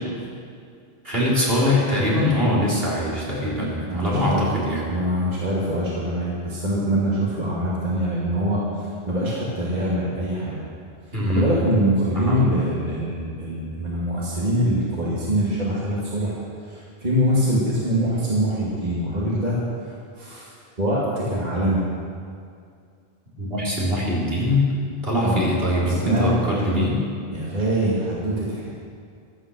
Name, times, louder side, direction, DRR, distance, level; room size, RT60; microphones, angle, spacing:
voice 1, 1.0-4.9 11.1-11.5 12.1-12.4 23.4-24.7 25.0-27.0, left 1 dB, 70° right, -6 dB, 4.2 m, -22 dB
voice 2, 3.9-4.4 4.9-10.6 11.4-16.4 16.7-20.5 20.8-21.8 25.2-25.4 25.9-26.6 27.3-28.7, equal, 45° right, -6 dB, 2.5 m, -24 dB
14.5 x 13.0 x 6.5 m, 2.3 s
omnidirectional pair, 1.0 m